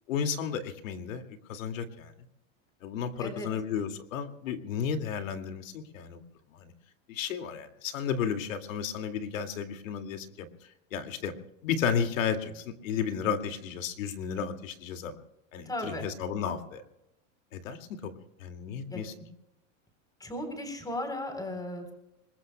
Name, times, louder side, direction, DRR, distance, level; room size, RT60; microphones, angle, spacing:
voice 1, 0.1-1.2 1.5-2.1 2.8-6.2 6.6-6.7 7.1-10.5 10.9-11.3 11.6-15.2 15.5-16.8 17.5-19.1, left 7 dB, 90° left, 6 dB, 2.3 m, -33 dB
voice 2, 3.2-3.5 15.7-16.1 18.9-19.0 20.2-21.9, left 1 dB, 10° left, 6 dB, 3.8 m, -36 dB
26.0 x 21.5 x 2.2 m, 0.86 s
supercardioid pair, 145°, 38 cm